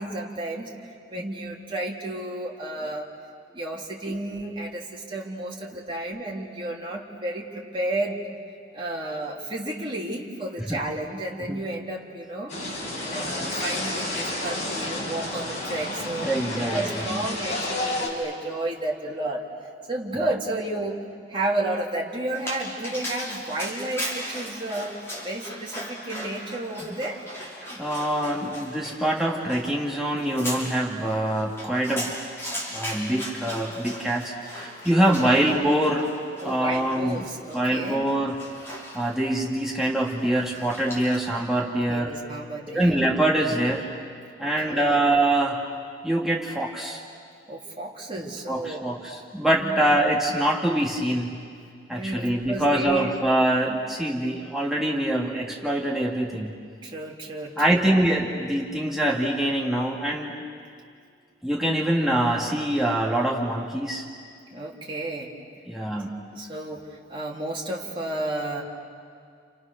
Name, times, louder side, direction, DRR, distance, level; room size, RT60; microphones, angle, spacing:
voice 1, 0.0-3.1 3.5-8.2 8.7-19.5 19.9-21.0 21.3-27.2 34.9-35.4 36.4-38.1 41.6-43.0 44.4-45.0 47.5-48.9 49.4-49.9 51.9-53.1 56.8-58.0 64.5-65.3 66.3-68.6, right 1 dB, 30° right, -3 dB, 3.5 m, -32 dB
sound 1, 12.5-18.1, left 1 dB, 45° left, 5.3 m, -30 dB
voice 2, 16.2-16.8 17.1-17.3 27.7-32.1 32.7-36.1 36.4-37.2 37.5-38.4 38.9-42.1 42.7-43.8 44.4-45.6 46.0-47.0 48.5-51.4 51.9-56.6 57.6-60.3 61.4-64.1 65.7-66.2, right 1 dB, ahead, -3 dB, 2.6 m, -24 dB
Dog, 22.3-41.4, equal, 15° left, 6.0 m, -38 dB
30.0 x 29.5 x 6.8 m, 2.2 s
head